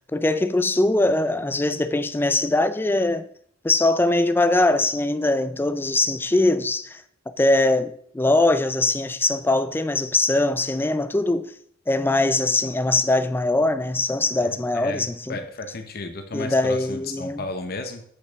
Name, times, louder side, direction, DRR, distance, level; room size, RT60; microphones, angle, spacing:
voice 1, 0.1-3.2 3.6-7.0 7.4-11.5 11.9-15.4 16.3-17.4, left 2 dB, 10° left, 0.4 m, -21 dB
voice 2, 14.4-18.0, left 2 dB, 55° left, 0.9 m, -34 dB
8.0 x 5.4 x 3.5 m
head